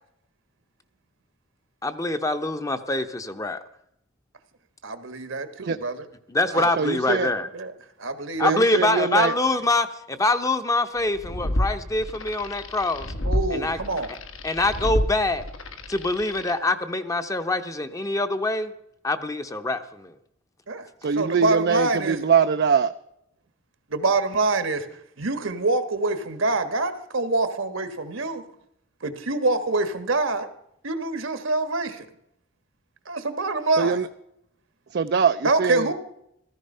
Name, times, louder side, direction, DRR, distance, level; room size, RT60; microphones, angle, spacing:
voice 1, 1.8-3.6 6.3-7.5 8.4-13.1 13.5-13.8 14.4-15.4 15.9-18.7 19.0-20.1, left 2 dB, 15° left, 9 dB, 0.7 m, -24 dB
voice 2, 4.8-6.1 6.5-6.7 7.5-7.7 8.0-8.6 13.2-14.1 20.7-20.8 21.1-22.2 23.9-24.9 25.2-28.4 29.0-30.5 30.8-32.1 33.1-34.0 35.4-35.9, right 3 dB, 75° right, 10 dB, 1.4 m, -25 dB
voice 3, 6.8-7.3 8.4-9.3 21.0-22.9 33.8-34.1 34.9-35.9, right 6 dB, 55° right, 9 dB, 0.4 m, -22 dB
sound 1, 11.0-16.5, left 1 dB, 80° left, 1.5 m, -30 dB
14.5 x 14.5 x 5.5 m, 0.78 s
head